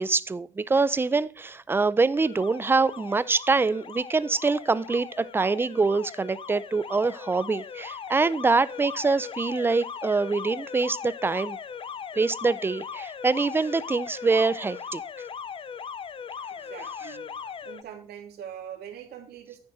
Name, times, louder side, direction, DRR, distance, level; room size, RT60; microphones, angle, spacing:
voice 1, 0.0-11.6 12.1-15.0, right 4 dB, 15° right, 0.5 m, -25 dB
Alarm, 2.1-17.8, left 7 dB, 30° left, 0.6 m, -39 dB
voice 2, 16.5-17.3 17.6-19.6, right 9 dB, 70° right, 2.8 m, -42 dB
10.5 x 5.2 x 6.3 m
cardioid pair, 110°, 17 cm